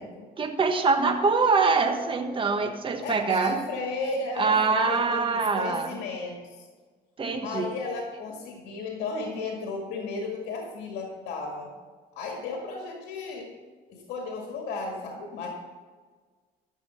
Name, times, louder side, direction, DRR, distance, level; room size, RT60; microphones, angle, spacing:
voice 1, 0.4-3.6 4.4-6.0 7.2-7.7, right 4 dB, 30° right, 5 dB, 1.3 m, -24 dB
voice 2, 3.0-6.7 7.4-11.7 12.2-13.5 13.9-15.5, left 3 dB, 75° left, 1 dB, 2.0 m, -34 dB
13.0 x 7.1 x 5.7 m, 1.5 s
cardioid pair, 110°, 17 cm